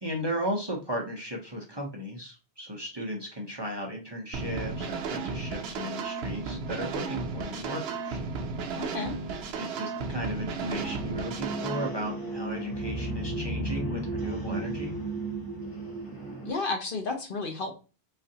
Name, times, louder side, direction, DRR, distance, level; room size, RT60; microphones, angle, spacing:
voice 1, 0.0-8.2 9.6-15.0, equal, 25° right, 0 dB, 0.7 m, -35 dB
sound 1, 4.3-11.9, right 4 dB, 70° right, 0.8 m, -34 dB
voice 2, 8.7-9.1 16.4-17.7, left 3 dB, 55° left, 2 dB, 1.0 m, -32 dB
sound 2, 10.6-16.5, right 2 dB, 20° left, 1.0 m, -34 dB
4.0 x 2.5 x 2.7 m, 0.33 s
omnidirectional pair, 1.1 m